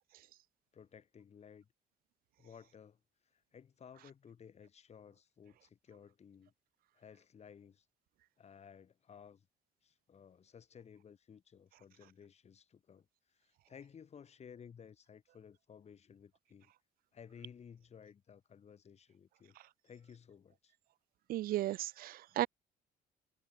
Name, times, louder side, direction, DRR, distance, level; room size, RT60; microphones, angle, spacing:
voice 1, 0.7-1.7 2.4-3.0 3.3-6.5 6.9-7.9 8.4-9.5 9.8-16.7 17.1-19.6 19.8-20.7, left 7 dB, 40° left, 3.9 m, -56 dB
voice 2, 21.3-22.5, right 15 dB, 60° right, 0.4 m, -35 dB
cardioid pair, 110°, 17 cm